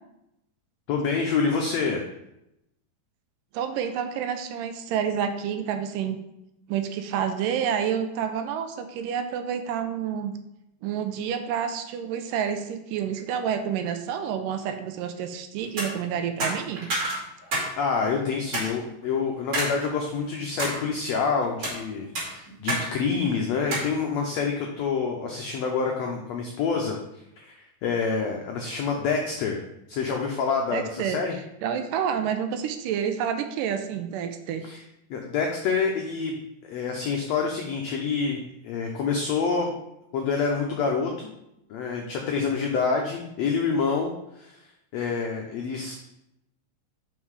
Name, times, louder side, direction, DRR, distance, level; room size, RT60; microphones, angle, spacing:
voice 1, 0.9-2.0 17.8-27.0 27.4-29.6 29.9-31.3 34.6-34.8 35.1-36.4 36.6-39.7 40.1-41.3 41.7-44.6 44.9-45.9, left 5 dB, 85° left, 1 dB, 1.5 m, -27 dB
voice 2, 3.5-6.2 6.7-10.3 10.8-16.9 30.7-31.2 31.6-34.6, right 8 dB, 80° right, 8 dB, 2.2 m, -29 dB
sound 1, 15.6-15.9 16.4-17.7 18.0-18.1 18.5-18.7 19.5-19.7 20.2-20.8 21.4-21.8 22.2-22.9 23.1-23.2 23.7-23.9, right 1 dB, 45° right, 3.3 m, -28 dB
5.6 x 5.6 x 4.7 m, 0.85 s
omnidirectional pair, 3.9 m